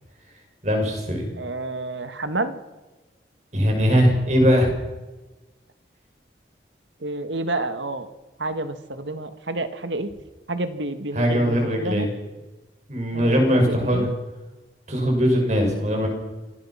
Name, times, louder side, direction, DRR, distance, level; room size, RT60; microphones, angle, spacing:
voice 1, 0.6-1.3 3.5-4.7 11.1-12.1 12.9-14.1 14.9-16.1, equal, 40° right, 3 dB, 6.2 m, -20 dB
voice 2, 1.4-2.6 7.0-8.1 8.4-10.1 10.5-12.1 13.1-14.1, right 2 dB, 80° right, 10 dB, 1.9 m, -29 dB
26.0 x 19.0 x 5.9 m, 1.1 s
head